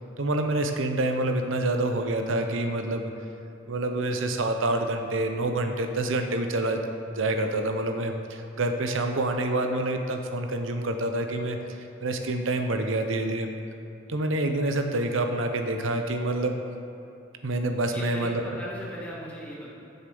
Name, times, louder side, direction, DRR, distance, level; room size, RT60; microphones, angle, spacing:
voice 1, 0.2-3.1 3.7-6.8 7.1-13.5 14.1-16.6 17.4-18.4, right 2 dB, 75° right, 5 dB, 0.7 m, -27 dB
voice 2, 17.9-19.7, equal, 5° left, -6 dB, 2.0 m, -37 dB
8.0 x 7.1 x 6.9 m, 2.7 s
head